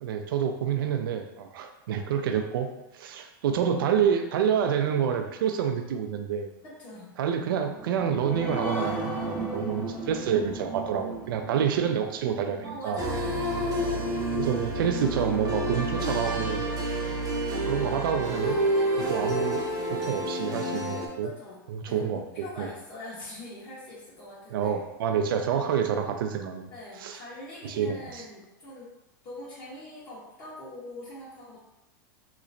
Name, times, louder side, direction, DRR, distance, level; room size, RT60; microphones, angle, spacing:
voice 1, 0.0-2.7 2.9-6.5 7.2-13.0 14.4-16.6 17.7-18.6 19.0-21.3 21.7-22.2 22.6-22.7 24.5-26.7 27.0-27.2 27.6-28.2, right 8 dB, 80° right, 6 dB, 0.4 m, -28 dB
voice 2, 6.6-7.1 12.6-13.4 13.7-14.1 18.6-18.8 21.2-24.9 26.7-28.9 29.2-31.6, left 1 dB, 45° left, -9 dB, 1.2 m, -43 dB
sound 1, 7.7-14.7 15.2-15.3 15.6-15.7, right 2 dB, 20° left, 1.1 m, -36 dB
sound 2, 13.0-21.1, right 1 dB, 30° right, 0.8 m, -29 dB
3.1 x 2.9 x 2.5 m, 0.95 s
hypercardioid pair, 105°, 12 cm